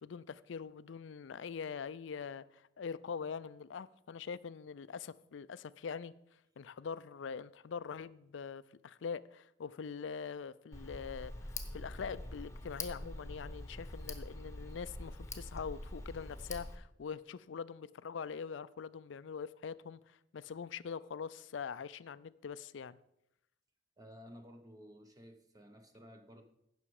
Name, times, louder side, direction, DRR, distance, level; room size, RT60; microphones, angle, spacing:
voice 1, 0.0-6.1 6.6-23.0, left 6 dB, 75° left, 0.4 m, -43 dB
Tick, 10.7-16.8, left 2 dB, 15° left, 1.0 m, -45 dB
voice 2, 24.0-26.4, equal, 20° right, 0.8 m, -54 dB
15.5 x 6.2 x 4.8 m
head